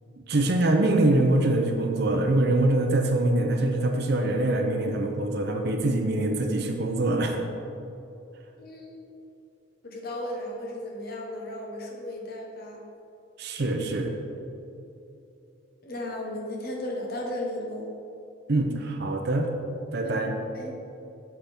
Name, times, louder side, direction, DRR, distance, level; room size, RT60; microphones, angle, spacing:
voice 1, 0.3-7.4 13.4-14.1 18.5-19.5 19.9-20.4, right 2 dB, 50° right, 3 dB, 0.5 m, -24 dB
voice 2, 8.6-9.0 9.8-12.8 15.8-17.9 20.0-20.1 20.5-20.7, left 1 dB, 45° left, -1 dB, 1.0 m, -35 dB
7.2 x 5.8 x 3.4 m, 2.8 s
head